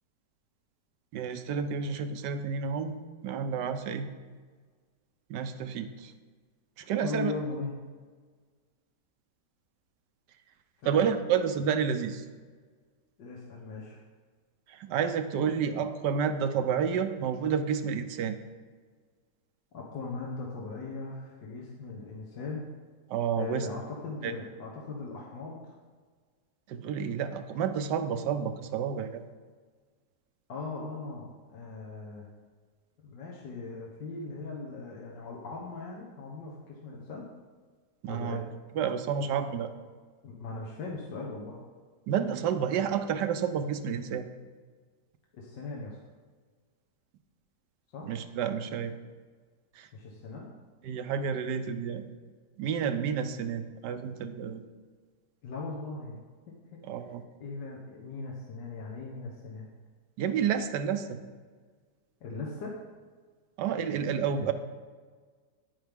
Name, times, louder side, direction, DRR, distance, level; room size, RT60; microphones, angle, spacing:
voice 1, 1.1-3.0 3.2-4.1 5.3-6.1 6.8-7.3 10.8-12.2 14.7-18.4 23.1-23.7 24.2-24.3 26.7-29.2 38.0-38.4 38.8-39.7 42.1-44.2 48.0-48.9 49.8-49.9 50.8-52.0 52.6-54.6 56.8-57.2 60.2-61.2 63.6-64.5, right 7 dB, 80° right, 9 dB, 1.3 m, -30 dB
voice 2, 7.0-7.7 10.8-11.1 13.2-14.0 19.7-22.7 23.4-25.7 30.5-32.3 33.0-37.2 38.1-38.4 40.2-41.6 45.3-46.0 47.9-48.1 49.9-50.5 55.4-56.2 56.5-56.8 57.4-59.7 62.2-62.8 64.4-64.5, left 3 dB, 80° left, -3 dB, 1.8 m, -39 dB
9.8 x 9.2 x 3.5 m, 1.5 s
omnidirectional pair, 1.9 m